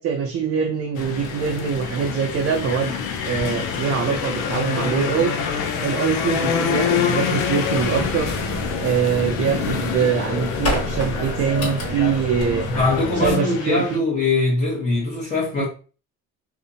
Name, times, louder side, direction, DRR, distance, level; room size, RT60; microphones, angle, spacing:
voice 1, 0.0-3.0 3.2-5.3 5.8-8.3 8.8-12.7 13.2-14.0 15.6-15.7, right 6 dB, 50° right, 0.5 m, -23 dB
sound 1, 0.9-14.0, left 7 dB, 85° left, 0.5 m, -26 dB
sound 2, 7.7-13.4, equal, 50° left, 1.5 m, -29 dB
voice 2, 12.7-15.7, left 3 dB, 25° left, 0.9 m, -22 dB
2.5 x 2.1 x 2.6 m
cardioid pair, 90°, 30 cm